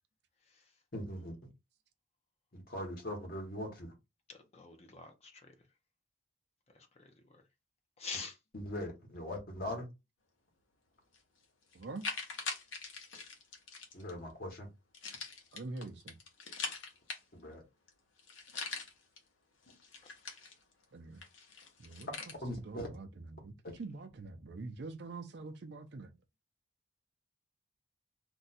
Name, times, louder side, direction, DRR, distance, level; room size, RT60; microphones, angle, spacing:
voice 1, 0.9-1.4 2.5-3.9 8.5-9.9 13.9-14.7 17.3-17.6 22.4-22.9, left 1 dB, 50° left, 1.2 m, -40 dB
voice 2, 4.3-5.5 6.7-7.4 8.0-8.4 20.0-20.2, left 4 dB, 35° left, 0.6 m, -46 dB
sound 1, 11.1-11.2 11.7-14.1 14.9-17.5 17.9-18.0 18.2-19.2 19.6-20.8 21.2-22.4, left 4 dB, 85° left, 0.9 m, -43 dB
voice 3, 11.7-12.1 15.5-16.2 20.9-21.2 21.8-22.2 22.5-26.1, right 3 dB, 60° right, 0.5 m, -45 dB
2.6 x 2.2 x 4.0 m
head